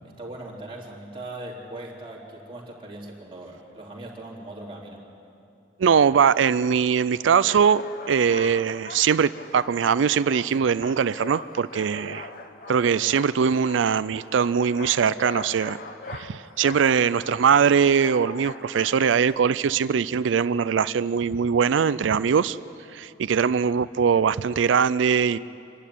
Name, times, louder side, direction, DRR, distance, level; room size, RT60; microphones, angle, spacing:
voice 1, 0.2-5.0, right 1 dB, 25° right, -4 dB, 3.4 m, -39 dB
voice 2, 5.8-12.3 12.7-15.8 16.1-22.6 22.9-25.4, right 6 dB, 85° right, 16 dB, 0.4 m, -21 dB
sound 1, 7.3-19.4, left 3 dB, 50° left, 1.2 m, -41 dB
26.0 x 11.5 x 9.9 m, 2.7 s
head